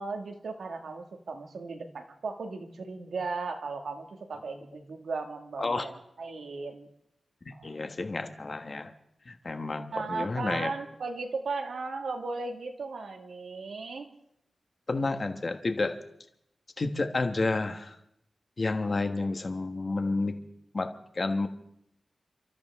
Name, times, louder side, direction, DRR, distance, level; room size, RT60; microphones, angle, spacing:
voice 1, 0.0-6.9 7.5-7.8 9.9-14.1, right 4 dB, 85° right, 4 dB, 1.9 m, -36 dB
voice 2, 7.4-8.9 9.3-10.7 14.9-16.0 16.8-18.0 18.6-20.4 20.7-21.5, left 3 dB, 40° left, 7 dB, 1.3 m, -30 dB
30.0 x 13.0 x 3.6 m, 0.76 s
wide cardioid pair, 130°, 0 cm